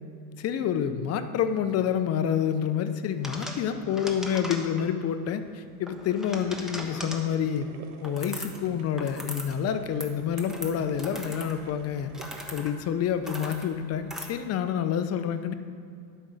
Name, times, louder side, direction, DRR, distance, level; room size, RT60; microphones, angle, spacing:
voice 1, 0.4-7.7 8.0-12.1 12.5-15.5, left 8 dB, 35° left, 9 dB, 0.7 m, -28 dB
sound 1, 3.2-5.0 5.9-7.3 8.0-8.7 8.9-9.5 9.8-14.3, equal, ahead, 1.2 m, -39 dB
sound 2, 7.1-12.6, right 6 dB, 80° right, 1.1 m, -49 dB
11.0 x 5.5 x 6.3 m, 2.4 s
supercardioid pair, 120°, 42 cm